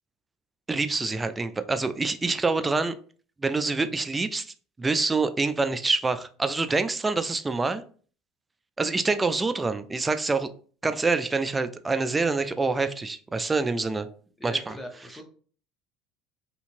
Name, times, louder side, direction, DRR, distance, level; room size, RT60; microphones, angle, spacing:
voice 1, 0.7-2.9 3.4-7.8 8.8-10.5 10.8-14.1 14.4-14.8, right 3 dB, 20° right, 10 dB, 0.3 m, -26 dB
voice 2, 14.4-15.2, left 1 dB, 10° left, 2 dB, 0.7 m, -40 dB
2.7 x 2.6 x 2.6 m, 0.43 s
hypercardioid pair, 80°, 0 cm